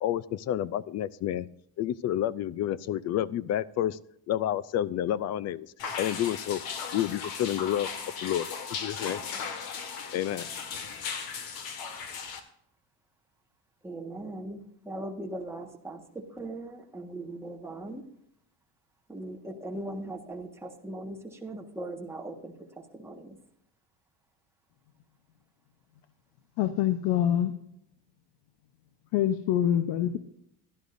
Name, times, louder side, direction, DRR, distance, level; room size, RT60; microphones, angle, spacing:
voice 1, 0.0-1.5 1.8-4.0 4.3-6.6 6.9-7.9 8.2-9.2 10.1-10.5, left 11 dB, 40° left, 20 dB, 0.4 m, -30 dB
sound 1, 5.8-12.4, left 6 dB, 60° left, 1.8 m, -37 dB
voice 2, 13.8-18.0 19.1-23.4, right 1 dB, 5° right, 1 dB, 1.5 m, -39 dB
voice 3, 26.6-27.5 29.1-30.2, left 11 dB, 80° left, 10 dB, 1.0 m, -25 dB
16.5 x 11.5 x 2.6 m, 0.74 s
cardioid pair, 155°, 42 cm